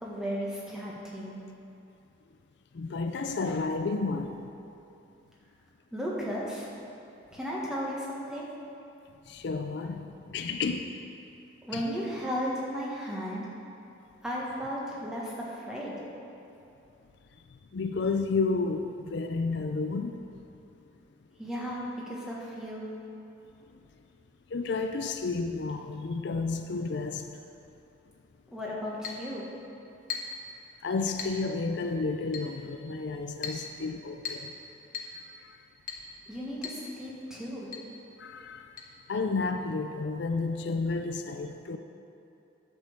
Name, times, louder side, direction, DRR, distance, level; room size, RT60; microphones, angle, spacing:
voice 1, 0.0-1.4 5.9-6.7 7.3-8.4 11.7-13.5 14.2-15.9 21.4-22.9 28.5-29.5 36.3-37.7, equal, 5° right, 1.6 m, -35 dB
voice 2, 2.7-4.4 9.3-10.9 11.7-11.8 17.7-20.2 24.5-27.3 30.8-34.5 38.2-38.7 39.1-41.8, left 4 dB, 60° left, 0.4 m, -31 dB
Chink clink, 29.0-29.3 30.1-30.4 31.2-31.4 32.3-32.5 33.4-33.7 34.2-34.5 34.9-35.2 35.9-36.1 36.6-36.8 37.1-37.2 37.7-37.9 38.8-38.9, left 6 dB, 45° left, 1.1 m, -37 dB
10.0 x 5.4 x 7.3 m
head